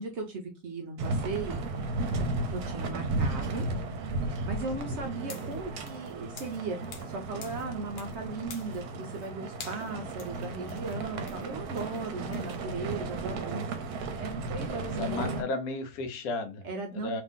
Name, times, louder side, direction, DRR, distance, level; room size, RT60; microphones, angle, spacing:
voice 1, 0.0-1.6 2.5-3.7 4.5-13.8 14.1-15.5 16.6-17.2, right 3 dB, 60° right, 3 dB, 0.8 m, -37 dB
sound 1, 1.0-15.4, right 2 dB, 85° right, 1.1 m, -34 dB
sound 2, 5.2-7.2 7.4-8.2 8.5-9.3 9.6-12.6, left 5 dB, 50° left, 0.8 m, -48 dB
voice 2, 14.8-16.7 17.0-17.2, left 3 dB, 75° left, 7 dB, 1.1 m, -34 dB
2.8 x 2.5 x 3.5 m, 0.27 s
omnidirectional pair, 1.6 m